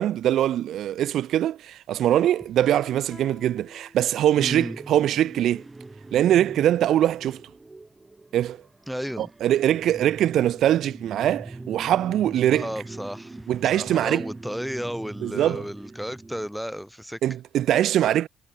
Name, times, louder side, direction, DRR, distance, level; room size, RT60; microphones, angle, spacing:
voice 1, 0.0-5.6 6.1-7.5 8.3-8.6 9.2-12.7 13.5-14.2 15.2-15.6 17.2-18.3, right 12 dB, 75° right, 0.4 m, -22 dB
Piano, 2.1-4.4, left 4 dB, 30° left, 1.4 m, -47 dB
voice 2, 4.4-4.8 8.9-9.3 12.5-17.2, equal, ahead, 1.5 m, -33 dB
sound 1, 4.5-16.5, right 2 dB, 20° right, 1.0 m, -42 dB
cardioid pair, 90°, 0 cm